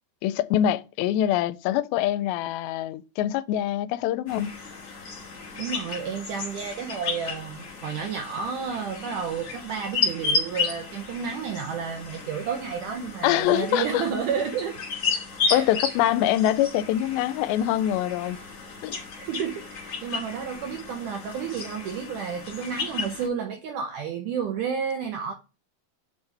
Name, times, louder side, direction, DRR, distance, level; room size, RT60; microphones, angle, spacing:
voice 1, 0.2-4.6 13.2-14.0 15.5-18.4 18.8-19.0, left 12 dB, 90° left, 2.4 m, -24 dB
sound 1, 4.3-23.3, left 4 dB, 35° left, 2.8 m, -33 dB
voice 2, 5.6-14.7 15.5-15.7 19.2-25.3, right 6 dB, 70° right, 2.1 m, -31 dB
8.3 x 5.6 x 3.3 m
omnidirectional pair, 4.2 m